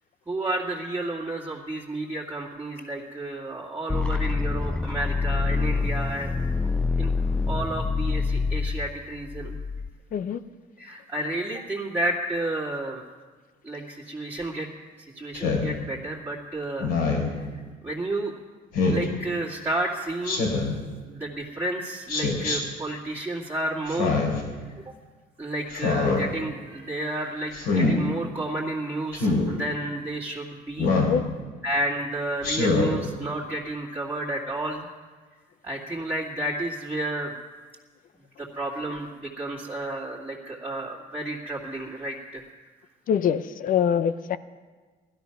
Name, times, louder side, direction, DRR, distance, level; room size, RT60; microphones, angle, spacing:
voice 1, 0.3-6.3 7.0-7.1 7.5-9.6 10.8-13.0 13.6-14.7 15.2-16.9 17.2-18.3 18.9-20.5 21.1-24.2 24.6-24.9 25.4-30.9 31.6-34.9 35.6-37.3 38.4-42.4, right 1 dB, 10° right, -7 dB, 2.3 m, -31 dB
sound 1, 3.9-9.9, left 4 dB, 5° left, 0.4 m, -26 dB
voice 2, 10.1-10.4 30.9-31.2 43.1-44.4, left 8 dB, 55° left, 14 dB, 0.7 m, -24 dB
Speech synthesizer, 15.3-15.7 16.8-17.3 18.7-19.1 20.2-20.8 22.1-22.6 23.9-24.4 25.7-26.2 27.5-27.9 29.1-29.5 30.8-31.2 32.4-32.9, left 3 dB, 90° left, 3.8 m, -24 dB
16.5 x 12.5 x 5.9 m, 1.4 s
cardioid pair, 110°, 17 cm